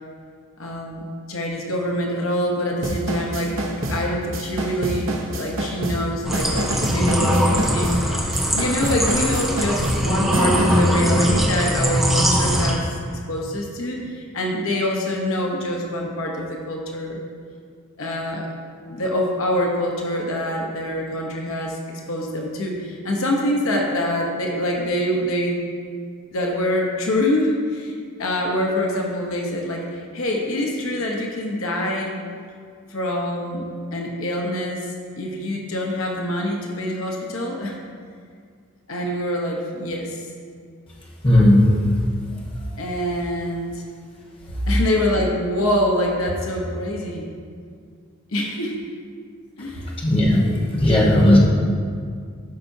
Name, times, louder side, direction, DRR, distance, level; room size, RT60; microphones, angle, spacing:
voice 1, 0.6-1.0 1.3-3.6 3.9-13.0 13.3-17.2 18.0-18.5 18.9-25.6 26.3-32.2 32.9-37.8 38.9-40.3 42.8-43.8 44.7-47.3 48.3-48.8 49.6-49.9, left 1 dB, 75° left, 0 dB, 0.9 m, -25 dB
sound 1, 2.8-11.0, right 1 dB, 65° right, 0.9 m, -28 dB
sound 2, 6.2-12.7, equal, ahead, 0.7 m, -21 dB
voice 2, 41.2-41.7 50.0-50.5 50.7-51.4, left 1 dB, 25° left, -4 dB, 1.2 m, -15 dB
12.5 x 5.6 x 2.7 m, 2.1 s
head